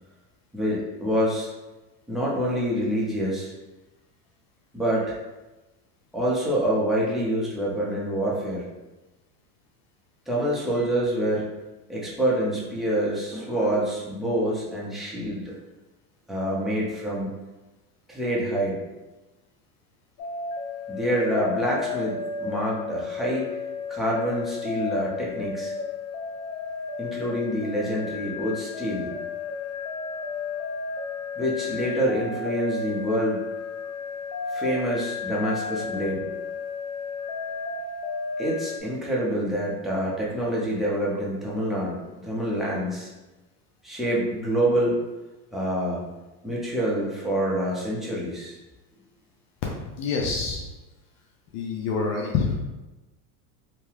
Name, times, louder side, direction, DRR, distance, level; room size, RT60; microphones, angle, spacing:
voice 1, 0.5-1.5 2.1-3.5 4.7-5.2 6.1-8.7 10.3-11.6 11.9-15.5 16.3-17.3 18.1-18.8 20.9-23.5 23.9-25.7 27.0-29.1 31.4-33.4 34.5-36.2 38.4-43.1 43.8-45.0 45.5-46.0 46.4-48.6, equal, ahead, -6 dB, 0.6 m, -26 dB
sound 1, 20.2-38.8, left 5 dB, 85° left, 0.6 m, -33 dB
voice 2, 49.6-50.6 51.5-52.5, left 5 dB, 45° left, -1 dB, 0.6 m, -27 dB
2.9 x 2.2 x 3.2 m, 1.1 s
supercardioid pair, 105°, 48 cm